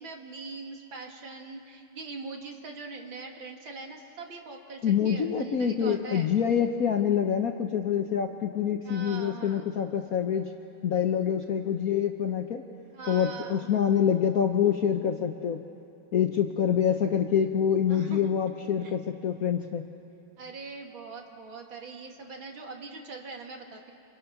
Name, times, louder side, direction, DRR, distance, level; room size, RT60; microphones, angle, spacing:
voice 1, 0.0-6.3 8.8-9.7 12.9-13.7 17.9-18.3 18.8-19.0 20.4-23.9, right 4 dB, 60° right, 2 dB, 2.8 m, -42 dB
voice 2, 4.8-10.5 10.8-12.6 13.1-15.6 16.1-19.8, left 8 dB, 55° left, 5 dB, 1.0 m, -26 dB
28.0 x 28.0 x 5.9 m, 2.6 s
omnidirectional pair, 2.4 m